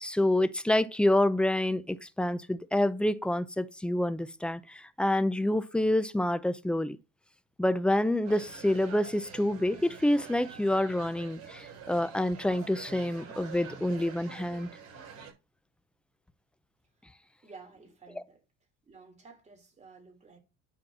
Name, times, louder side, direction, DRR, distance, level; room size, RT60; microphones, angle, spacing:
voice 1, 0.0-7.0 7.6-14.7, left 1 dB, 5° left, 0.5 m, -27 dB
sound 1, 8.2-15.3, right 6 dB, 55° right, 7.1 m, -47 dB
voice 2, 17.4-18.4 18.8-20.4, right 4 dB, 20° right, 3.1 m, -52 dB
10.5 x 4.5 x 6.0 m
cardioid pair, 145°, 31 cm